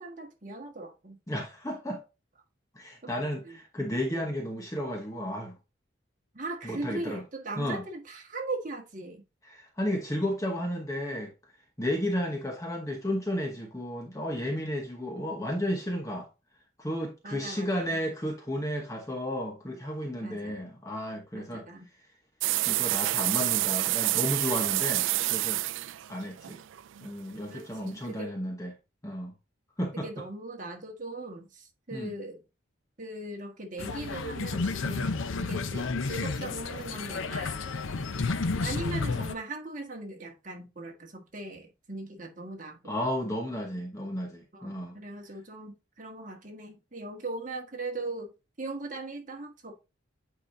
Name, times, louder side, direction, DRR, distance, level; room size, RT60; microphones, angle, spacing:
voice 1, 0.0-1.2 3.4-3.6 6.3-9.2 17.2-18.0 20.2-20.7 21.3-21.9 27.5-28.4 30.0-32.4 33.0-35.1 35.4-37.8 38.6-43.0 44.5-48.3 48.6-49.8, right 2 dB, 40° right, 1.6 m, -39 dB
voice 2, 1.3-2.0 2.7-5.6 6.6-7.2 7.6-7.8 9.4-11.3 11.8-16.3 16.8-21.6 22.7-25.6 26.1-26.6 27.0-28.7 29.0-29.3 29.8-30.1 31.9-32.1 42.9-45.0, equal, 15° left, 1.0 m, -33 dB
sound 1, 22.4-27.3, right 17 dB, 70° right, 0.3 m, -28 dB
sound 2, 33.8-39.3, left 3 dB, 80° left, 0.7 m, -31 dB
9.0 x 4.9 x 2.7 m
head